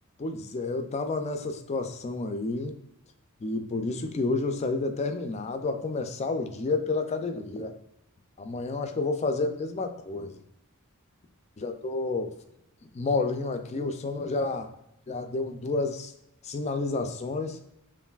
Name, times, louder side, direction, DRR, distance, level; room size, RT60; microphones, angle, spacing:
voice 1, 0.2-2.8 3.4-7.8 8.4-10.4 11.6-12.3 12.9-14.7 15.1-16.1 16.4-17.6, left 3 dB, 30° left, 7 dB, 0.3 m, -30 dB
5.4 x 2.6 x 2.3 m, 0.83 s
head